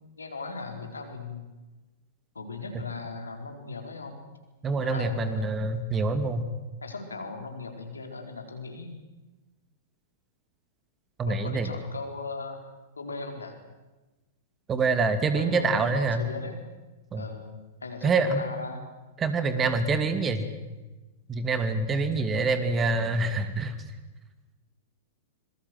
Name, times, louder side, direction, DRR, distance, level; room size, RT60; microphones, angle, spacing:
voice 1, 0.2-1.4 2.3-4.2 4.8-5.6 6.8-8.9 11.3-12.6 13.0-13.6 15.3-16.6 17.2-17.5 17.8-18.8, left 3 dB, 80° left, 4 dB, 4.6 m, -38 dB
voice 2, 4.6-6.4 11.2-11.7 14.7-16.2 17.1-17.2 18.0-18.4 19.2-20.4 21.3-23.7, right 3 dB, 20° right, 10 dB, 2.7 m, -26 dB
26.0 x 22.5 x 8.0 m, 1.2 s
figure-of-eight pair, 100°, 0 cm